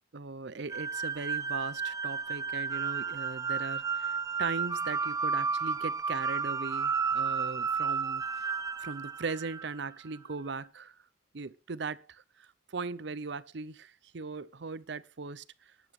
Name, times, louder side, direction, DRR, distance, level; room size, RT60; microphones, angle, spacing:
voice 1, 0.1-8.2 8.8-11.0 11.3-15.4, right 4 dB, 60° right, 0.6 m, -39 dB
sound 1, 0.7-9.9, right 5 dB, 15° right, 0.7 m, -32 dB
19.0 x 10.5 x 3.2 m
head